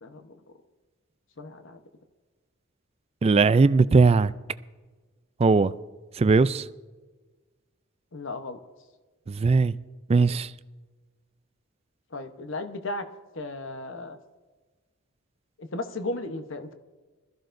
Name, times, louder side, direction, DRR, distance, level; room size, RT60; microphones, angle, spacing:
voice 1, 0.0-0.4 1.4-1.8 8.1-8.6 12.1-13.1 13.3-14.2 15.6-16.7, left 2 dB, 65° left, 1.0 m, -35 dB
voice 2, 3.2-4.3 5.4-5.7 6.2-6.6 9.3-9.8 10.1-10.5, right 4 dB, 30° right, 0.3 m, -19 dB
20.5 x 14.0 x 2.6 m
head